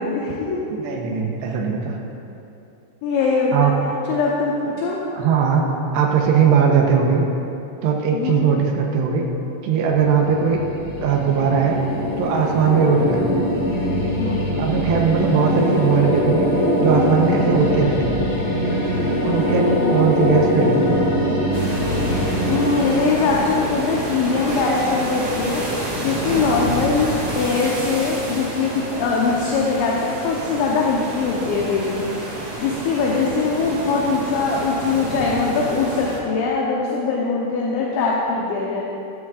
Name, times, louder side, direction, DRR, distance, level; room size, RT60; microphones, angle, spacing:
voice 1, 0.0-0.7 3.0-3.7 4.1-5.0 8.1-8.5 14.2-14.4 19.8-20.0 22.4-38.8, left 4 dB, 75° left, -3 dB, 2.8 m, -22 dB
voice 2, 0.8-2.0 3.5-3.7 5.2-7.3 7.8-9.3 9.6-10.6 11.0-11.8 12.2-13.3 14.6-16.5 16.8-18.2 19.2-21.1, right 6 dB, 85° right, 0 dB, 2.5 m, -19 dB
sound 1, 9.8-24.8, equal, 45° left, 3.3 m, -22 dB
sound 2, 21.5-36.2, right 1 dB, 65° right, 0.9 m, -29 dB
14.0 x 13.0 x 2.5 m, 2.8 s
omnidirectional pair, 5.8 m